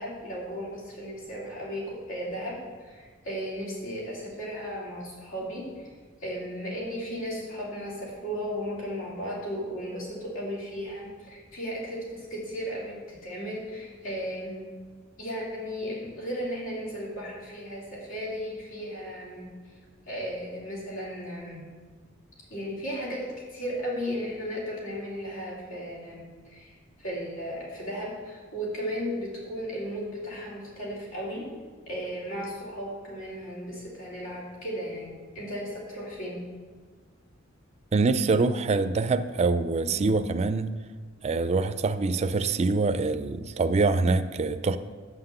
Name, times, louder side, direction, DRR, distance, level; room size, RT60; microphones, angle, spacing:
voice 1, 0.0-5.8 6.2-14.7 15.2-19.5 20.1-21.6 22.5-26.7 27.0-31.5 31.9-36.4, equal, 80° left, 3.1 m, -35 dB
voice 2, 37.9-40.7 41.2-44.8, right 3 dB, 35° right, 0.4 m, -25 dB
8.0 x 5.9 x 6.7 m
head